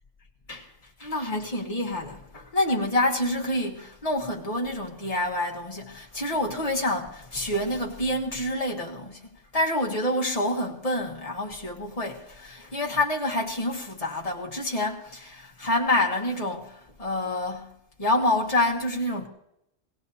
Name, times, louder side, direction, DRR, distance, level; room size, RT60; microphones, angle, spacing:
voice 1, 1.0-17.7 18.0-19.3, left 1 dB, 30° left, 1.6 m, -27 dB
22.5 x 17.0 x 2.8 m
omnidirectional pair, 1.4 m